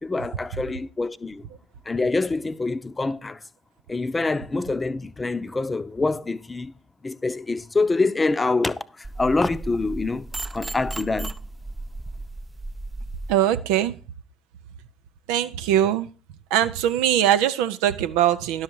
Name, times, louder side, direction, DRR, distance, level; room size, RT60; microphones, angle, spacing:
voice 1, 0.0-1.5 1.9-3.4 3.9-6.7 7.0-10.3 10.5-11.4, left 3 dB, 25° left, 0.7 m, -25 dB
sound 1, 9.0-13.3, right 2 dB, 20° right, 0.6 m, -35 dB
voice 2, 13.3-14.0 15.3-16.1 16.5-18.6, right 11 dB, 70° right, 0.5 m, -21 dB
11.5 x 6.5 x 4.6 m
figure-of-eight pair, 50°, 0 cm